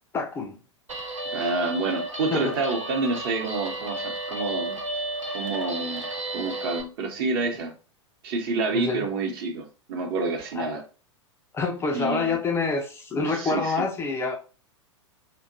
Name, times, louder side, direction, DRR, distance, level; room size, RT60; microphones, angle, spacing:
voice 1, 0.1-0.6 2.3-2.6 8.7-9.1 10.6-10.8 11.5-14.4, left 4 dB, 15° left, 0.3 m, -27 dB
Guitar, 0.9-6.8, right 2 dB, 80° right, 0.8 m, -33 dB
voice 2, 1.3-4.8 5.3-6.1 6.3-7.7 8.2-10.8 11.9-12.4 13.3-13.8, right 3 dB, 45° right, 0.9 m, -28 dB
2.8 x 2.2 x 2.6 m
figure-of-eight pair, 100°, 16 cm